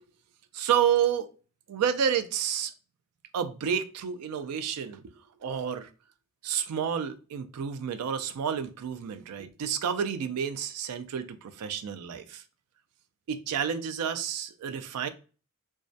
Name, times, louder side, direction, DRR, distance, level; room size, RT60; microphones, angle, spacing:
voice 1, 0.5-1.3 1.7-2.7 3.3-5.0 5.4-5.9 6.4-12.4 13.3-15.1, right 8 dB, 85° right, 0.3 m, -30 dB
2.3 x 2.1 x 2.6 m
head